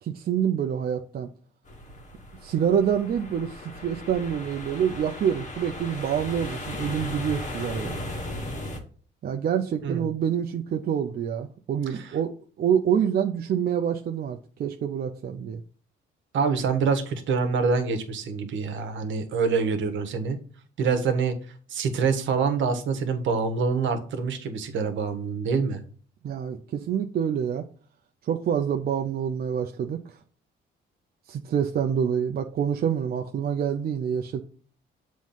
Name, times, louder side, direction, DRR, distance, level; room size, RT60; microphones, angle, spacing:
voice 1, 0.0-1.3 2.4-8.0 9.2-15.6 26.2-27.7 28.2-30.0 31.3-34.4, right 8 dB, 50° right, 0.6 m, -27 dB
sound 1, 1.7-8.8, left 1 dB, 40° left, 1.4 m, -37 dB
voice 2, 16.3-20.4 20.8-21.3 21.7-25.8, right 5 dB, 75° right, 1.2 m, -25 dB
7.1 x 3.1 x 5.6 m
cardioid pair, 90°, 20 cm